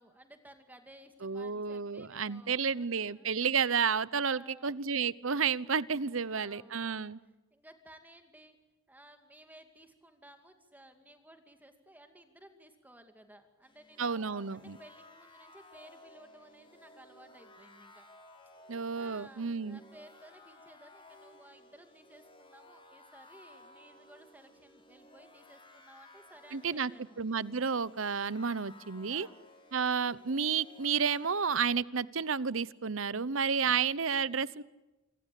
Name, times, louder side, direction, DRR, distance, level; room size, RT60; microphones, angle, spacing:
voice 1, 0.0-3.3 4.3-4.8 6.0-8.6 8.9-18.1 18.9-27.2 29.1-29.4 33.2-33.9, right 1 dB, 10° right, 6 dB, 2.4 m, -57 dB
voice 2, 1.2-7.2 14.0-14.8 18.7-19.8 26.5-26.9 27.2-29.3 29.7-34.6, right 6 dB, 75° right, 19 dB, 0.9 m, -31 dB
sound 1, 13.6-31.6, left 2 dB, 25° left, 6.7 m, -57 dB
27.0 x 25.5 x 8.5 m, 1.1 s
head